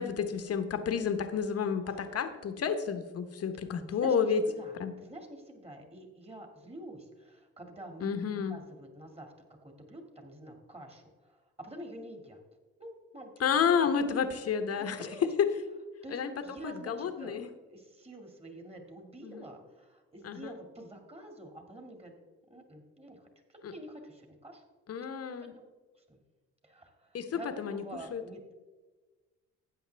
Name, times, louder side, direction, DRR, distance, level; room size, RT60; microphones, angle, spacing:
voice 1, 0.0-4.4 4.8-4.9 8.0-8.6 13.4-15.5 16.1-16.3 16.6-17.5 19.2-19.4 20.2-20.5 23.6-23.7 24.9-25.5 27.1-27.8 28.1-28.2, left 7 dB, 55° left, 9 dB, 1.1 m, -30 dB
voice 2, 1.8-2.2 3.9-8.1 8.5-9.3 9.6-12.4 12.8-13.4 15.0-15.3 16.0-22.1 22.5-24.6 25.4-25.7 26.1-26.2 26.6-28.5, right 1 dB, 20° right, 4 dB, 2.2 m, -48 dB
12.5 x 8.7 x 3.4 m, 1.3 s
cardioid pair, 90°, 30 cm